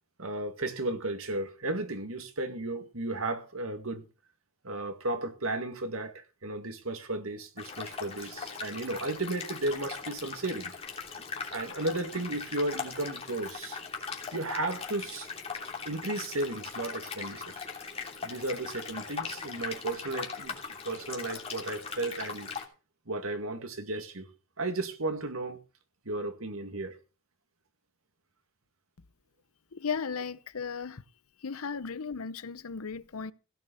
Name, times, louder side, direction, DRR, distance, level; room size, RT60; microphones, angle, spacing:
voice 1, 0.2-4.0 4.6-10.7 11.5-13.8 14.3-15.3 15.8-17.7 18.2-20.6 20.8-22.5 23.1-24.3 24.6-25.6 26.1-27.0, right 2 dB, 75° right, 2.2 m, -34 dB
sound 1, 7.6-22.6, left 5 dB, 30° left, 3.0 m, -40 dB
voice 2, 29.7-31.0 31.4-33.3, left 5 dB, 80° left, 0.7 m, -35 dB
16.5 x 6.5 x 6.9 m
head